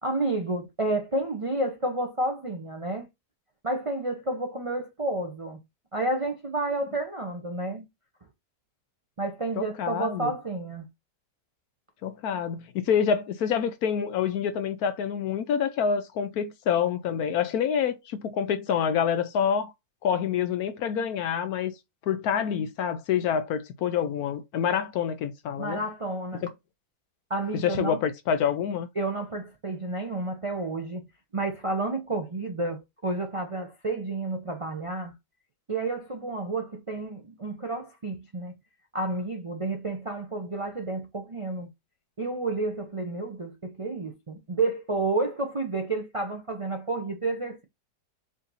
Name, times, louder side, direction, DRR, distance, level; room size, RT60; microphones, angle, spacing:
voice 1, 0.0-3.1 3.6-5.6 5.9-7.9 9.2-10.9 25.6-26.4 27.3-28.0 29.0-31.0 31.3-35.1 35.7-38.5 38.9-41.7 42.2-47.6, right 2 dB, 40° right, 0.4 m, -30 dB
voice 2, 9.6-10.3 12.0-19.7 20.0-21.7 22.1-25.8 26.4-26.5 27.6-28.9, left 7 dB, 70° left, 1.1 m, -27 dB
5.0 x 2.7 x 3.9 m
omnidirectional pair, 1.8 m